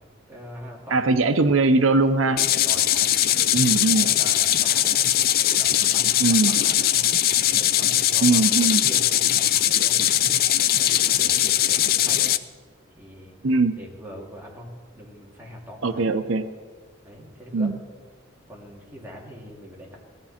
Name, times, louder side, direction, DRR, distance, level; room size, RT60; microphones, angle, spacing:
voice 1, 0.3-1.4 2.2-5.1 5.4-7.0 7.5-10.4 10.7-12.4 13.0-13.4 13.8-16.1 17.0-17.7 18.5-20.0, equal, 10° right, -3 dB, 2.7 m, -42 dB
voice 2, 0.9-2.4 3.5-4.1 6.2-6.6 8.2-8.8 13.4-13.8 15.8-16.4 17.5-17.7, right 3 dB, 90° right, 10 dB, 0.7 m, -20 dB
sound 1, 2.4-12.4, left 11 dB, 50° left, 0.5 m, -21 dB
18.0 x 13.0 x 4.3 m, 1.5 s
head